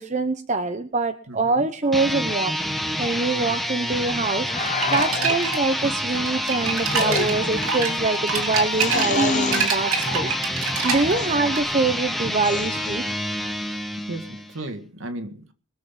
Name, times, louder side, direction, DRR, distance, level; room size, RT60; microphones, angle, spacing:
voice 1, 0.0-2.6 3.0-4.5 4.9-10.3 10.8-13.0, right 3 dB, 35° right, 0.9 m, -24 dB
voice 2, 1.3-1.7 14.1-15.5, right 1 dB, 65° right, 2.1 m, -35 dB
sound 1, 1.8-14.6, equal, ahead, 1.2 m, -28 dB
sound 2, 4.5-5.4 6.9-7.6 8.7-9.7 11.0-11.4 12.3-13.0, left 3 dB, 35° left, 1.1 m, -28 dB
sound 3, 4.6-11.6, right 4 dB, 85° right, 3.2 m, -27 dB
21.5 x 7.8 x 5.9 m
head